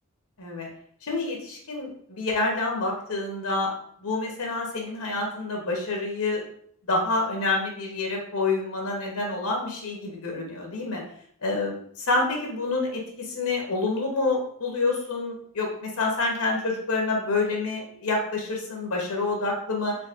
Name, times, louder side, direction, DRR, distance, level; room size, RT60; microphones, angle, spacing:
voice 1, 0.4-0.7 1.0-3.7 4.0-6.4 6.9-11.0 11.4-20.0, left 3 dB, 80° left, 0 dB, 0.9 m, -27 dB
4.1 x 2.7 x 2.4 m, 0.63 s
head